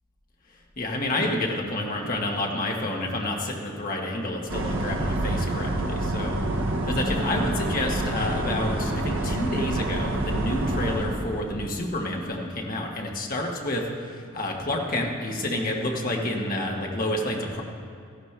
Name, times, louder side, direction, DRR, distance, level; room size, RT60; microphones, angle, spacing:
voice 1, 0.8-6.3 6.7-17.6, left 1 dB, 40° left, 0 dB, 1.3 m, -29 dB
sound 1, 4.5-11.6, right 1 dB, 60° right, 1.0 m, -27 dB
15.0 x 11.5 x 3.4 m, 2.4 s
head